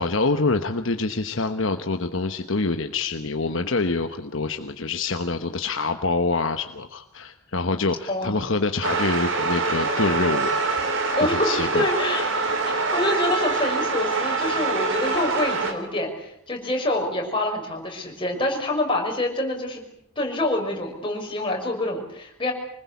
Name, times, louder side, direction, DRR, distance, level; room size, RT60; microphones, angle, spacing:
voice 1, 0.0-10.5 10.9-11.9, left 3 dB, 60° left, 7 dB, 1.1 m, -26 dB
voice 2, 8.1-8.4 11.2-19.8 20.2-22.5, left 1 dB, 25° left, 0 dB, 6.1 m, -26 dB
sound 1, 8.8-15.7, right 3 dB, 60° right, 3.5 m, -25 dB
25.5 x 20.5 x 8.5 m, 0.72 s
head